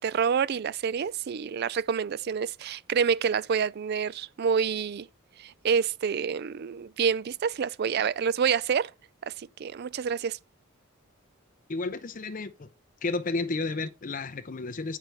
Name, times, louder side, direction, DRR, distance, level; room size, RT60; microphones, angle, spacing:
voice 1, 0.0-5.1 5.4-8.9 9.3-10.4, right 6 dB, 50° right, 0.4 m, -28 dB
voice 2, 11.7-12.7 13.0-15.0, left 3 dB, 40° left, 0.6 m, -32 dB
9.5 x 4.6 x 5.5 m
head